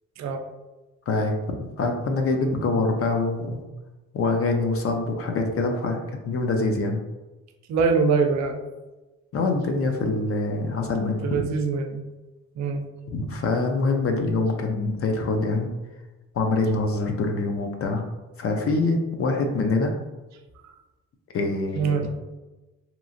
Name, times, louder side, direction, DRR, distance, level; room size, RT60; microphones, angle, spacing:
voice 1, 1.1-3.6 4.1-7.0 9.3-11.4 13.1-15.7 16.3-18.0 18.4-19.9 21.3-22.0, left 3 dB, 50° left, 3 dB, 0.5 m, -25 dB
voice 2, 7.7-8.6 11.2-12.0 12.6-12.8 20.6-20.7 21.7-22.1, right 5 dB, 65° right, 5 dB, 0.5 m, -23 dB
2.9 x 2.4 x 2.5 m, 1.1 s
cardioid pair, 90°, 30 cm